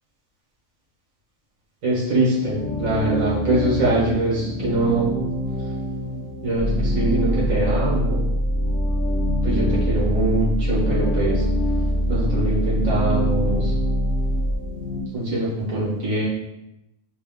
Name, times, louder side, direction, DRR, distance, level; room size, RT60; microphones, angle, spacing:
voice 1, 1.8-5.1 6.4-8.3 9.4-11.5 12.1-13.7 15.1-16.2, right 2 dB, 75° right, -7 dB, 1.6 m, -23 dB
sound 1, 2.4-15.0, left 1 dB, 55° left, 0.6 m, -29 dB
sound 2, 6.6-14.6, equal, 15° left, 0.6 m, -23 dB
4.0 x 2.3 x 3.5 m, 0.88 s
omnidirectional pair, 1.4 m